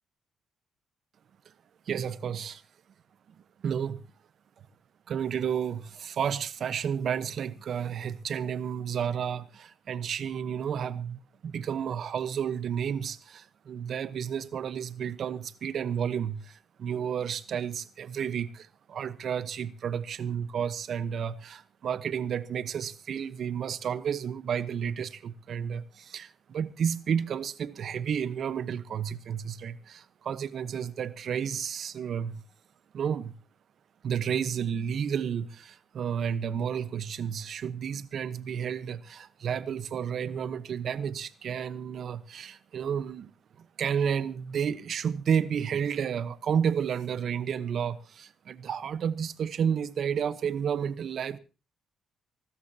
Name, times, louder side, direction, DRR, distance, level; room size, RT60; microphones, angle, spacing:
voice 1, 1.9-2.6 3.3-3.4 3.6-4.0 4.6-4.7 5.1-32.4 32.9-33.4 34.0-43.3 43.6-51.4, right 8 dB, 60° right, 1.0 m, -31 dB
26.0 x 13.0 x 2.9 m
cardioid pair, 90°, 0 cm